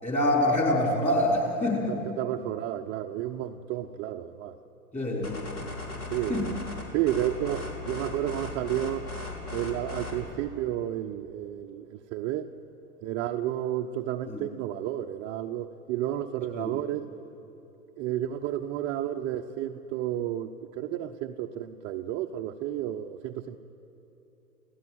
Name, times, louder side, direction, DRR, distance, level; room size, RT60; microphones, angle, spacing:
voice 1, 0.0-1.9 4.9-5.4 6.3-6.5 14.3-14.4 16.5-16.8, left 1 dB, 15° left, 0 dB, 5.0 m, -25 dB
voice 2, 1.9-4.6 6.1-6.6 6.9-9.1 9.5-12.5 13.0-17.1 18.0-20.5 20.8-23.6, right 12 dB, 25° right, 3 dB, 0.7 m, -31 dB
sound 1, 5.2-10.3, left 3 dB, 70° left, 6.0 m, -37 dB
29.0 x 17.0 x 9.2 m, 2.9 s
figure-of-eight pair, 110°, 45 cm